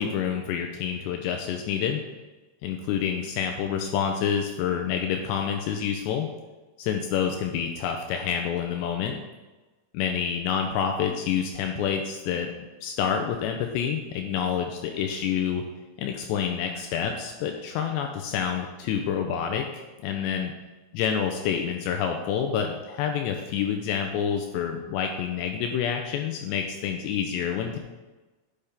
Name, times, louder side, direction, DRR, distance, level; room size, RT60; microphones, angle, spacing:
voice 1, 0.0-2.0 2.6-6.3 6.8-9.2 9.9-12.5 12.8-15.6 16.0-20.5 21.0-27.8, left 8 dB, 90° left, 4 dB, 2.5 m, -28 dB
9.9 x 6.8 x 3.6 m, 1.2 s
omnidirectional pair, 5.6 m